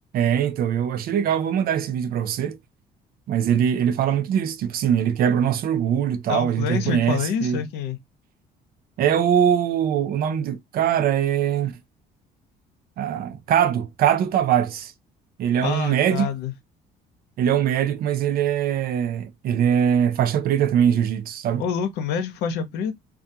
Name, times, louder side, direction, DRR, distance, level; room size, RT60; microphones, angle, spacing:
voice 1, 0.1-2.6 3.3-7.6 9.0-11.7 13.0-14.9 15.4-16.3 17.4-21.6, right 9 dB, 60° right, 0.5 m, -22 dB
voice 2, 6.3-8.0 15.6-16.5 21.6-23.0, left 7 dB, 85° left, 0.7 m, -27 dB
2.4 x 2.3 x 2.6 m
cardioid pair, 110°, 17 cm